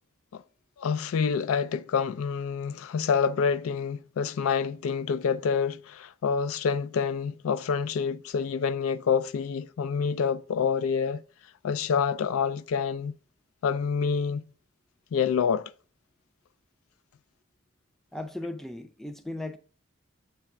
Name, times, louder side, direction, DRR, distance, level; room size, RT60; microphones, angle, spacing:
voice 1, 0.8-11.2 11.6-13.1 13.6-14.4 15.1-15.7, left 6 dB, 75° left, 0.4 m, -27 dB
voice 2, 18.1-19.6, left 1 dB, ahead, 0.4 m, -36 dB
7.6 x 3.4 x 5.9 m
head